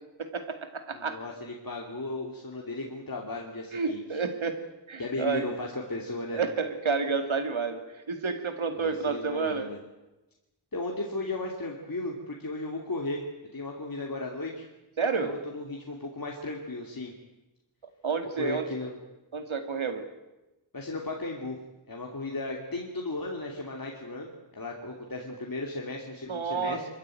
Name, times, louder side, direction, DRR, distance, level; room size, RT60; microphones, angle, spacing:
voice 1, 0.2-1.2 3.7-4.6 4.9-5.4 6.3-9.7 15.0-15.3 18.0-18.6 19.3-20.1 26.3-26.8, right 5 dB, 75° right, 7 dB, 2.4 m, -30 dB
voice 2, 0.9-4.2 5.0-6.4 8.7-9.8 10.7-13.2 13.5-14.7 15.2-17.1 18.4-18.9 20.7-21.6 21.9-26.8, left 2 dB, 45° left, 0 dB, 2.8 m, -35 dB
25.5 x 14.5 x 9.2 m, 1.0 s
wide cardioid pair, 80°, 48 cm